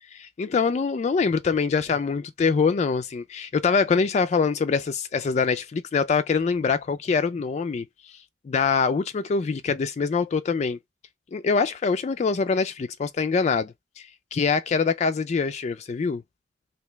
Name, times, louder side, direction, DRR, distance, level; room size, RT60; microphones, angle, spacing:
voice 1, 0.1-8.2 8.5-10.8 11.3-16.2, left 5 dB, 40° left, 0.3 m, -24 dB
3.0 x 2.8 x 3.3 m
head